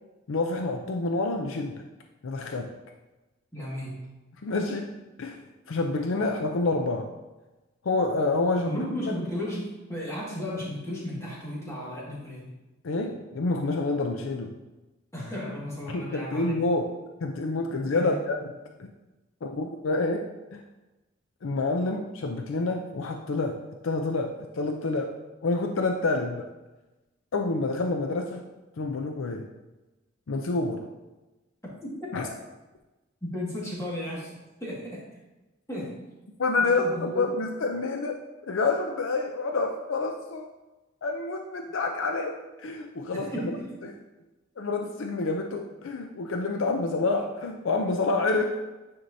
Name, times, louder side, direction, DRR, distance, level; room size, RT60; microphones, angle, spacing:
voice 1, 0.3-1.9 2.2-2.7 4.4-4.9 5.2-7.1 7.8-9.1 12.8-14.6 15.9-17.0 17.2-18.9 19.4-20.6 21.4-26.5 27.3-28.5 28.8-29.5 30.3-30.9 32.1-32.3 36.4-38.2 38.5-40.4 41.0-43.3 43.8-43.9 44.6-48.6, left 3 dB, 80° left, 4 dB, 0.5 m, -28 dB
voice 2, 3.5-4.1 8.7-12.5 15.1-16.6 17.9-18.2 31.8-32.1 33.2-34.3 34.6-35.1 35.7-36.1 36.6-37.3 43.1-43.8, left 1 dB, 15° left, -6 dB, 1.8 m, -34 dB
9.3 x 4.4 x 2.7 m, 1.1 s
head